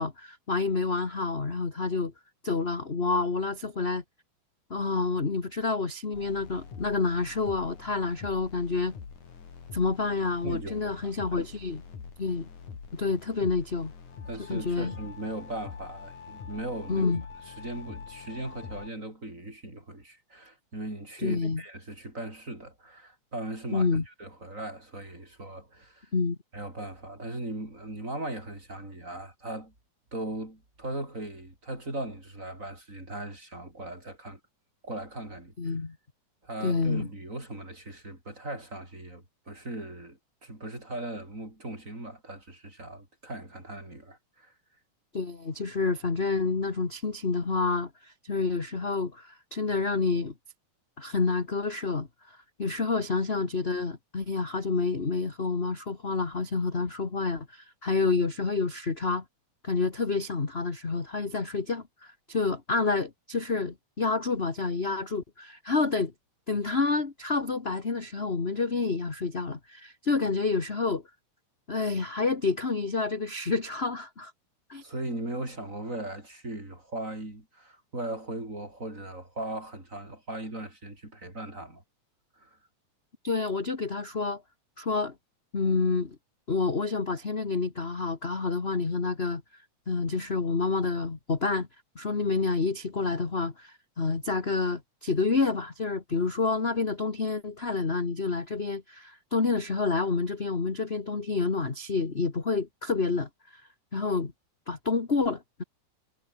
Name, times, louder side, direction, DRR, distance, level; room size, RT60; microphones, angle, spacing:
voice 1, 0.0-2.1 2.4-4.0 4.7-8.9 9.7-11.8 12.2-12.5 12.9-13.9 14.5-14.9 16.9-17.2 21.2-21.6 23.7-24.0 26.1-26.4 35.6-36.0 36.6-37.1 45.1-50.3 51.0-59.2 59.6-66.1 66.5-71.0 71.7-74.3 74.7-74.8 83.2-84.4 84.8-85.1 85.5-86.2 86.5-89.4 89.9-91.7 92.0-103.6 103.9-104.3 104.7-105.6, left 4 dB, 25° left, 1.7 m, -28 dB
sound 1, 6.1-18.9, left 6 dB, 80° left, 5.2 m, -45 dB
voice 2, 10.4-11.4 14.3-17.1 17.5-26.1 26.5-29.7 30.1-34.4 34.8-35.7 36.4-44.5 74.8-81.8 82.4-82.6, right 1 dB, 25° right, 7.2 m, -38 dB
omnidirectional pair, 3.4 m